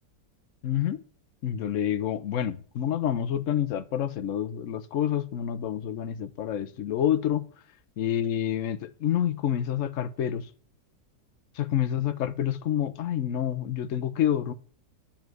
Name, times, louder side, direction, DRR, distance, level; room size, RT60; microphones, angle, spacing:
voice 1, 0.6-1.0 1.4-7.4 8.0-10.5 11.6-14.5, left 10 dB, 55° left, 1.0 m, -28 dB
10.0 x 5.7 x 7.6 m
omnidirectional pair, 1.9 m